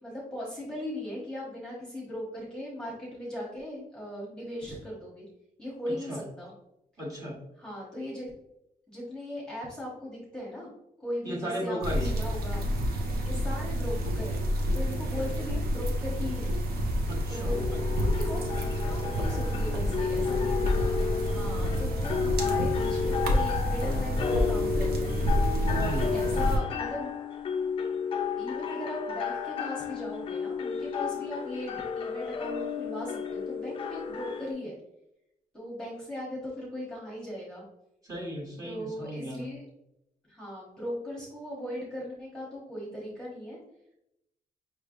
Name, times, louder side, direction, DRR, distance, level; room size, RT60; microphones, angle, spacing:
voice 1, 0.0-5.2 5.6-6.5 7.6-8.3 8.9-10.7 11.0-12.7 13.2-14.4 14.7-16.5 16.9-17.0 17.3-18.4 18.8-25.2 25.7-27.1 28.4-34.7 35.5-37.6 38.6-39.6 40.3-43.6, left 1 dB, 5° left, -5 dB, 1.0 m, -38 dB
voice 2, 5.9-6.2 7.0-7.4 11.2-12.1 17.1-18.1 25.6-26.1 38.0-39.5, equal, 25° right, -4 dB, 1.3 m, -36 dB
sound 1, 11.8-26.6, equal, 85° right, 0.8 m, -29 dB
sound 2, 17.5-34.5, left 6 dB, 35° left, 0.4 m, -32 dB
5.7 x 3.2 x 2.5 m, 0.82 s
wide cardioid pair, 180°, 15 cm